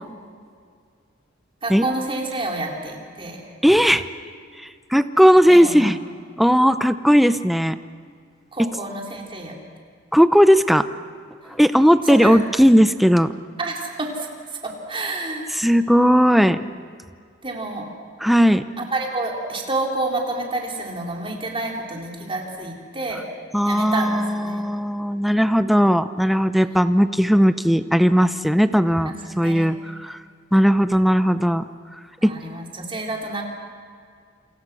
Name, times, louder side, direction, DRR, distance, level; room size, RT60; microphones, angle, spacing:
voice 1, 1.6-3.4 5.5-5.9 8.5-9.6 12.1-12.4 13.6-14.3 14.6-15.5 17.4-17.9 18.8-23.2 23.7-24.6 29.3-29.7 32.2-33.4, right 2 dB, 30° right, -1 dB, 3.9 m, -29 dB
voice 2, 3.6-4.1 4.6-6.0 6.4-7.8 8.6-8.7 10.1-10.8 11.5-13.3 15.5-16.7 18.2-18.6 23.5-30.2 30.5-31.7 32.2-32.3, equal, ahead, 11 dB, 0.7 m, -17 dB
28.0 x 27.5 x 6.3 m, 2.1 s
head